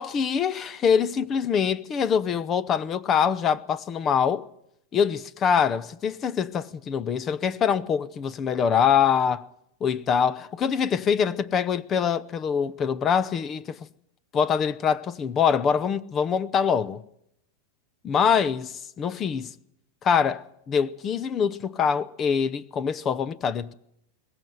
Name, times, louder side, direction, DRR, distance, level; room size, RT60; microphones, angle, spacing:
voice 1, 0.0-4.5 4.9-9.5 9.8-13.8 14.3-17.0 18.0-19.5 20.0-23.7, left 7 dB, 25° left, 0.8 m, -24 dB
22.0 x 18.5 x 7.9 m
supercardioid pair, 140°, 0 cm